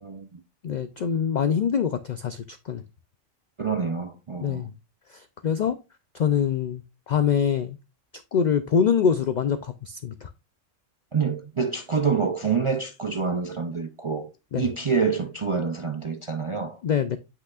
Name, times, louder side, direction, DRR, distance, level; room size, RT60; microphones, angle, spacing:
voice 1, 0.0-0.4 3.6-4.7 11.1-14.3 14.6-16.8, right 5 dB, 50° right, 0.3 m, -27 dB
voice 2, 0.6-2.8 4.4-4.7 5.1-5.8 6.1-7.8 8.3-10.3 14.5-14.7 16.8-17.2, left 7 dB, 80° left, 0.4 m, -24 dB
8.0 x 5.8 x 2.4 m
omnidirectional pair, 1.3 m